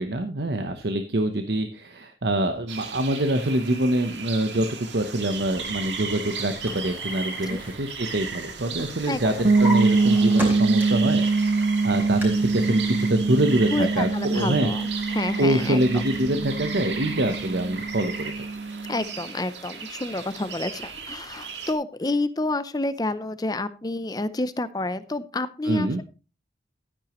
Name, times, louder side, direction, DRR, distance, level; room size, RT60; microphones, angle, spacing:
voice 1, 0.0-4.7 4.9-14.7 15.4-18.3 25.6-26.0, right 1 dB, 70° right, 6 dB, 0.9 m, -25 dB
sound 1, 2.7-21.7, right 5 dB, 85° right, 1.9 m, -36 dB
Drawer open or close, 6.0-8.5 8.8-11.1 11.6-12.2, equal, 10° right, 4.2 m, -36 dB
sound 2, 9.4-19.1, right 3 dB, 50° right, 0.6 m, -24 dB
voice 2, 13.7-16.1 18.9-26.0, left 2 dB, 20° left, 14 dB, 0.5 m, -29 dB
12.5 x 10.0 x 3.0 m, 0.32 s
head